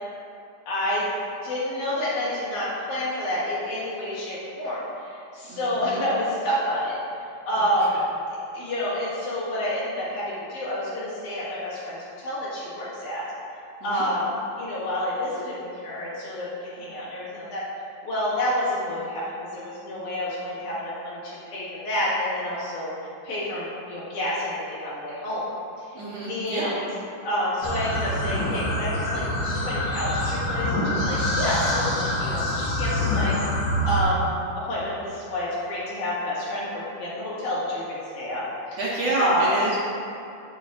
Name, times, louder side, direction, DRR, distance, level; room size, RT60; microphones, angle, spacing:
voice 1, 0.7-1.1 1.4-6.9 7.5-7.9 8.5-13.3 13.8-14.3 14.6-17.6 18.0-22.9 23.2-25.5 26.3-26.8 27.2-33.4 33.8-34.3 34.7-38.8 39.2-39.5, left 1 dB, 65° left, -9 dB, 3.1 m, -29 dB
voice 2, 5.5-6.0 13.8-14.0 25.9-26.7 38.8-39.8, right 2 dB, 65° right, -7 dB, 1.8 m, -28 dB
sound 1, 27.6-34.0, left 1 dB, 50° left, 1.4 m, -26 dB
8.5 x 7.2 x 2.4 m, 2.7 s
omnidirectional pair, 3.8 m